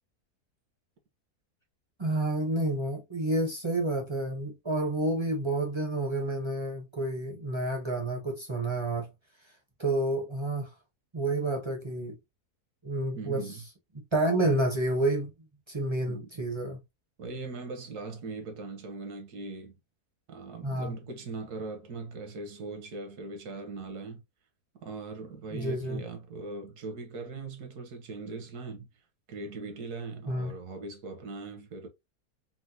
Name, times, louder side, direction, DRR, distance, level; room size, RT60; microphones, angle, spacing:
voice 1, 2.0-9.1 9.8-10.7 11.1-12.1 12.8-13.6 13.9-15.3 15.7-16.8 20.6-21.0 25.5-26.0 30.3-30.5, right 1 dB, 30° right, 0.5 m, -29 dB
voice 2, 13.1-13.6 16.1-16.3 17.2-19.7 20.3-24.2 24.8-28.9 29.3-31.9, right 3 dB, 75° right, 1.4 m, -40 dB
4.2 x 2.0 x 2.6 m
omnidirectional pair, 1.7 m